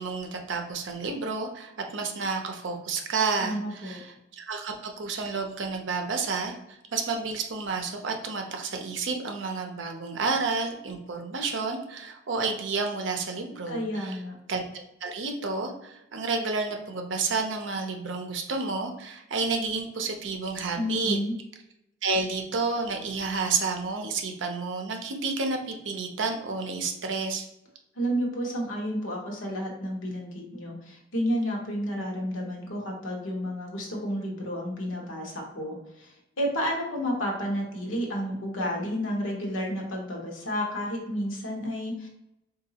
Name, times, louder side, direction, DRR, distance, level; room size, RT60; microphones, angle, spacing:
voice 1, 0.0-14.2 14.5-14.6 15.0-21.2 22.0-27.4, right 4 dB, 70° right, 4 dB, 0.6 m, -30 dB
voice 2, 3.4-4.0 13.7-14.4 20.7-21.3 28.0-42.1, equal, 85° left, -1 dB, 1.0 m, -31 dB
3.9 x 2.6 x 2.8 m, 0.87 s
head